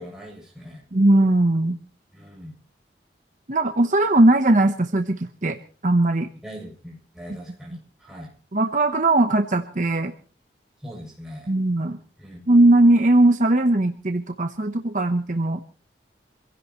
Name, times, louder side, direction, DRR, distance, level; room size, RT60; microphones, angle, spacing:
voice 1, 0.0-0.8 2.1-2.6 6.4-8.3 10.8-11.5 12.2-12.4, equal, 5° right, -2 dB, 7.1 m, -41 dB
voice 2, 0.9-1.8 3.5-5.6 5.8-6.3 7.3-7.4 8.5-10.1 11.5-12.0 12.5-15.6, right 2 dB, 45° right, 7 dB, 1.0 m, -19 dB
26.5 x 16.5 x 3.1 m, 0.39 s
head